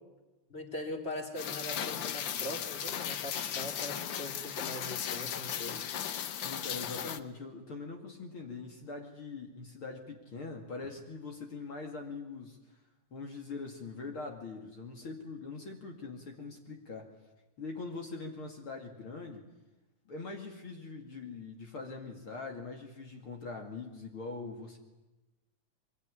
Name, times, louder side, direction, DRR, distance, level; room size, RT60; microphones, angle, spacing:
voice 1, 0.5-5.8, left 1 dB, 20° left, 3 dB, 3.6 m, -41 dB
Rain, 1.4-7.2, left 9 dB, 65° left, 1.2 m, -36 dB
voice 2, 6.4-12.6 13.1-17.1 17.6-19.5 20.1-24.8, left 3 dB, 45° left, 2 dB, 3.0 m, -42 dB
24.5 x 22.0 x 9.9 m, 1.1 s
omnidirectional pair, 3.4 m